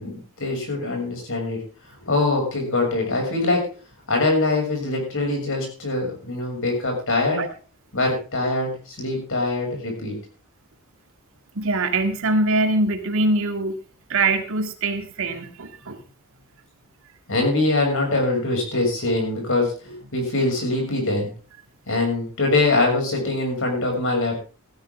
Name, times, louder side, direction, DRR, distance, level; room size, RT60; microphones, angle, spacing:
voice 1, 0.0-1.6 2.0-3.7 4.1-7.5 7.9-10.1 17.3-21.3 21.9-24.3, left 2 dB, 65° left, 2 dB, 6.7 m, -23 dB
voice 2, 11.6-13.8 14.1-16.0 17.3-17.4, right 2 dB, 65° right, 6 dB, 2.2 m, -23 dB
17.0 x 13.5 x 3.7 m, 0.35 s
head